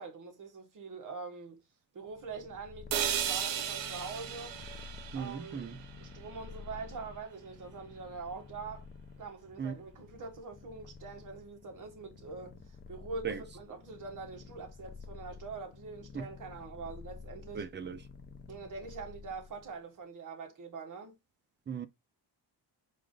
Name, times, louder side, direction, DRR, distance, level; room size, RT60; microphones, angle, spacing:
voice 1, 0.0-1.6 1.9-4.6 5.1-5.7 6.0-8.9 9.2-13.3 13.5-17.7 18.5-21.2, right 4 dB, 45° right, 1.4 m, -44 dB
Purr, 2.1-19.8, left 5 dB, 25° left, 0.5 m, -51 dB
sound 1, 2.9-6.9, right 9 dB, 90° right, 0.8 m, -36 dB
voice 2, 5.1-5.8 9.6-9.8 13.2-13.4 16.1-16.3 17.5-18.0 21.7-21.9, right 6 dB, 30° right, 0.4 m, -37 dB
4.8 x 2.4 x 3.7 m
wide cardioid pair, 175°, 42 cm